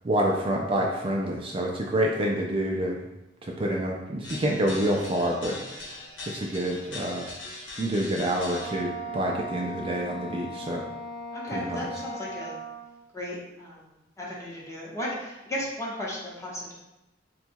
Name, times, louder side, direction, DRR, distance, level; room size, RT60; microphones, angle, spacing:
voice 1, 0.0-3.0 3.4-7.3 7.8-10.8 11.5-11.9, right 1 dB, 30° right, -1 dB, 0.4 m, -28 dB
sound 1, 4.2-8.8, left 2 dB, 85° left, 1.2 m, -40 dB
Wind instrument woodwind instrument, 8.4-13.0, right 1 dB, 60° right, 0.8 m, -38 dB
voice 2, 11.3-12.5 13.1-13.8 14.2-16.8, equal, 15° left, -4 dB, 0.9 m, -35 dB
3.9 x 2.3 x 4.4 m, 0.95 s
head